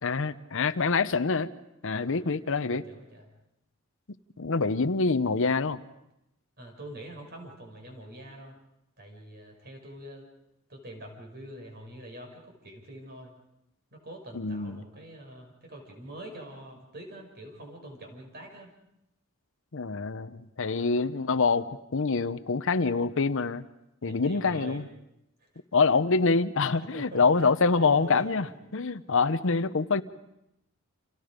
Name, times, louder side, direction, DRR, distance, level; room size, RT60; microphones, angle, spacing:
voice 1, 0.0-1.5 1.8-2.8 4.4-5.8 14.3-14.8 19.7-23.7 24.0-24.9 25.7-28.5 28.7-30.0, left 4 dB, 65° left, 13 dB, 0.8 m, -25 dB
voice 2, 1.9-3.3 6.6-8.5 9.0-10.3 10.7-13.3 13.9-18.7 20.7-20.9 24.0-24.8 25.4-25.5 26.8-28.5, right 1 dB, 50° right, 2 dB, 6.1 m, -45 dB
29.5 x 28.0 x 5.2 m, 0.84 s
head